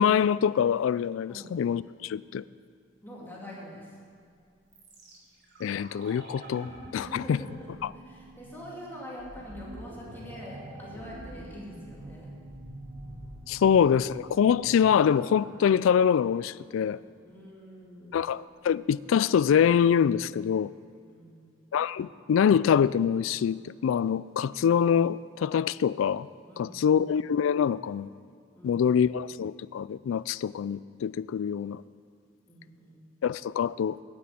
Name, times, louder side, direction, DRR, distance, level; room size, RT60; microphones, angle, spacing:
voice 1, 0.0-2.4 5.6-7.4 13.5-17.0 18.1-20.7 21.7-26.3 26.6-28.1 28.6-31.8 33.2-34.0, left 8 dB, 80° left, 19 dB, 0.3 m, -25 dB
voice 2, 3.0-4.0 6.9-12.4 17.2-18.2 21.1-21.5 26.5-27.0 28.5-28.8 32.5-33.0, equal, 10° left, -5 dB, 2.6 m, -45 dB
sound 1, 4.7-16.7 17.0-17.1, right 1 dB, 60° right, 3.2 m, -45 dB
9.6 x 7.6 x 8.6 m, 2.3 s
head